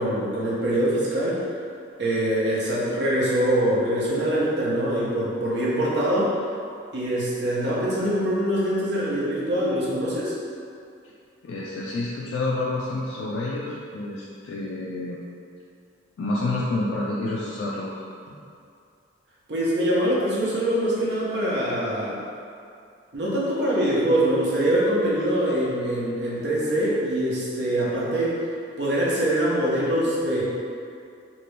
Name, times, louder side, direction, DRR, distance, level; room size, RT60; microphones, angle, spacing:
voice 1, 0.0-1.4 2.0-6.3 6.9-10.3 19.5-22.2 23.1-28.4 28.8-30.4, right 1 dB, 60° right, -7 dB, 0.7 m, -24 dB
voice 2, 11.4-15.2 16.2-17.9, left 2 dB, 75° left, -6 dB, 0.3 m, -28 dB
2.7 x 2.5 x 3.4 m, 2.4 s
head